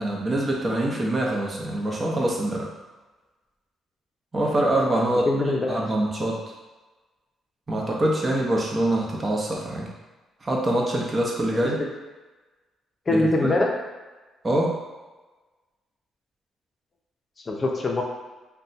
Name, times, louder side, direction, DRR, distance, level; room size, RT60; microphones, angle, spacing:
voice 1, 0.0-2.7 4.3-5.3 5.7-6.4 7.7-9.9 10.4-11.8 13.1-13.2 14.4-14.8, right 1 dB, 25° right, -2 dB, 0.7 m, -24 dB
voice 2, 5.2-5.8 11.6-11.9 13.1-13.7 17.5-18.0, left 2 dB, 35° left, 0 dB, 0.6 m, -23 dB
2.7 x 2.2 x 4.0 m, 1.2 s
cardioid pair, 90°, 0 cm